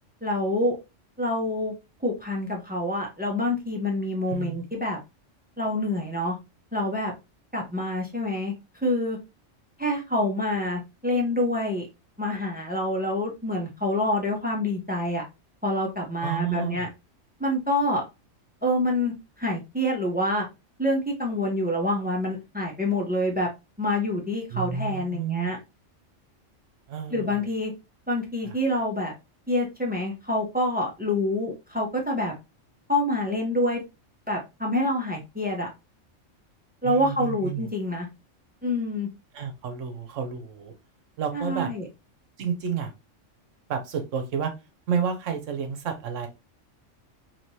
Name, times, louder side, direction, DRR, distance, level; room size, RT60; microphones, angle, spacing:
voice 1, 0.2-0.7 1.2-1.7 2.0-5.0 5.6-6.4 6.7-7.1 7.5-8.5 8.8-9.2 9.8-11.9 12.2-15.2 15.6-16.9 17.4-18.0 18.6-20.5 20.8-23.5 23.8-25.6 27.1-27.7 28.1-29.1 29.5-32.3 32.9-33.8 34.3-35.7 36.8-38.1 38.6-39.1 41.3-41.8, left 1 dB, 10° right, 0 dB, 0.6 m, -26 dB
voice 2, 4.3-4.6 16.2-16.9 24.5-25.5 26.9-27.4 28.4-28.5 36.8-37.7 39.3-40.7 41.2-41.7 42.4-42.9 43.7-44.5 44.9-46.3, right 7 dB, 80° right, 6 dB, 1.1 m, -30 dB
3.3 x 2.9 x 2.7 m, 0.24 s
omnidirectional pair, 1.3 m